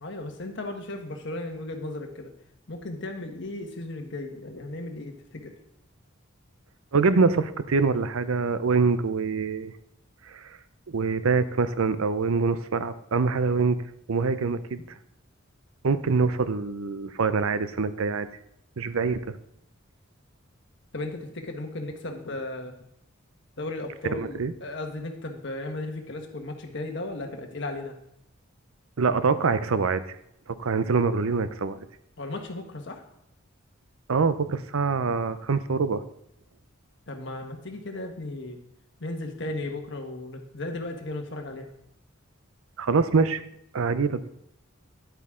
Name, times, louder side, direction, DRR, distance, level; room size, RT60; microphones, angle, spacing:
voice 1, 0.0-2.3 2.7-5.5 20.9-22.8 23.6-27.9 32.2-33.0 37.1-38.6 39.0-41.7, left 2 dB, 60° left, 3 dB, 1.4 m, -35 dB
voice 2, 6.9-9.7 10.3-10.4 10.9-13.8 14.1-14.8 15.8-18.3 18.8-19.4 24.2-24.5 29.0-30.0 30.5-31.9 34.1-36.0 42.8-43.4 43.7-44.3, right 4 dB, 90° right, 13 dB, 0.6 m, -24 dB
10.5 x 8.1 x 3.7 m, 0.76 s
head